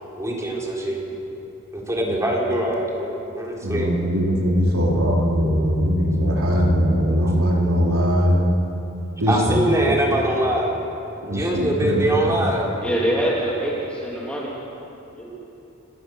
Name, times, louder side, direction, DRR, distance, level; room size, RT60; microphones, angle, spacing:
voice 1, 0.1-1.0 1.7-4.0 9.3-10.8 11.3-12.7, right 1 dB, 15° right, -3 dB, 3.9 m, -23 dB
voice 2, 3.6-8.4 9.2-9.6 11.2-12.4, equal, 85° right, -3 dB, 3.6 m, -20 dB
voice 3, 12.8-14.5 15.2-15.4, right 1 dB, 5° left, -5 dB, 3.0 m, -24 dB
29.0 x 19.0 x 6.4 m, 2.9 s
head